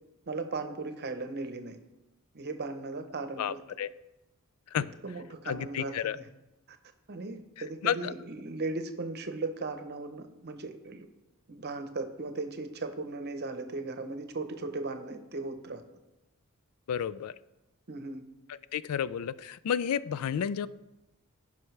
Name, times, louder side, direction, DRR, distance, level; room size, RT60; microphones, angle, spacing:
voice 1, 0.3-1.8 2.3-3.6 5.0-6.3 6.7-6.8 7.1-11.1 11.5-15.8 17.9-18.2, right 3 dB, 50° right, 8 dB, 0.8 m, -37 dB
voice 2, 3.4-3.9 4.7-4.9 5.5-6.2 7.8-8.1 16.9-17.3 18.5-20.7, left 8 dB, 85° left, 16 dB, 0.3 m, -31 dB
16.0 x 5.4 x 3.3 m, 0.98 s
head